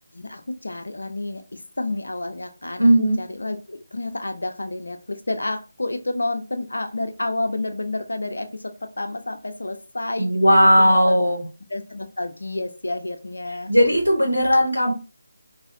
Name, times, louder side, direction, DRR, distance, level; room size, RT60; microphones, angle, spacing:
voice 1, 0.1-2.8 3.2-11.2 11.7-13.7, left 2 dB, 65° left, 7 dB, 0.5 m, -30 dB
voice 2, 2.8-3.2 10.2-11.4 13.7-14.9, equal, 90° right, 0 dB, 1.2 m, -17 dB
2.6 x 2.3 x 2.6 m, 0.32 s
figure-of-eight pair, 155°, 0 cm